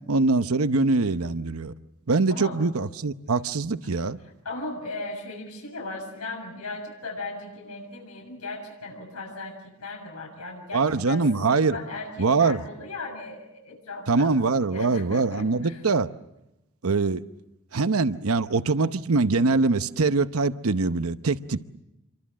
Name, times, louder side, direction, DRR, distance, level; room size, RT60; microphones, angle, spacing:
voice 1, 0.1-1.7 2.1-4.2 10.7-11.8 12.2-12.6 14.1-16.1 16.8-17.2 17.7-21.6, right 3 dB, 75° right, 11 dB, 0.9 m, -23 dB
voice 2, 2.3-2.6 4.2-14.4 14.7-15.8, left 2 dB, 85° left, 0 dB, 7.3 m, -37 dB
28.5 x 24.0 x 7.4 m, 0.93 s
head